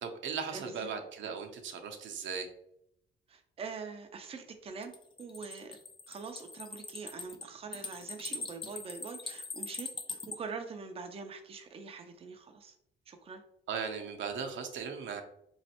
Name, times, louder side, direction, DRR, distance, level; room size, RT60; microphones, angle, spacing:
voice 1, 0.0-2.5 13.7-15.2, right 6 dB, 70° right, 5 dB, 0.7 m, -37 dB
voice 2, 0.5-0.9 3.3-4.9 5.2-5.8 6.1-12.7 13.1-13.4, right 5 dB, 30° right, 5 dB, 0.5 m, -44 dB
sound 1, 4.8-10.4, left 4 dB, 25° left, 0.5 m, -42 dB
3.9 x 3.1 x 2.9 m, 0.76 s
cardioid pair, 90°, 20 cm